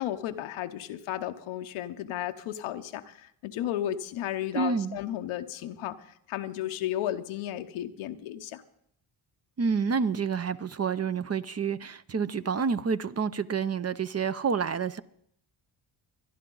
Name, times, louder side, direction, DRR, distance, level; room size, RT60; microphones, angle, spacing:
voice 1, 0.0-8.6, left 12 dB, 90° left, 0.9 m, -34 dB
voice 2, 4.5-5.0 9.6-15.0, right 5 dB, 30° right, 0.6 m, -28 dB
24.0 x 10.5 x 3.9 m
supercardioid pair, 60°, 48 cm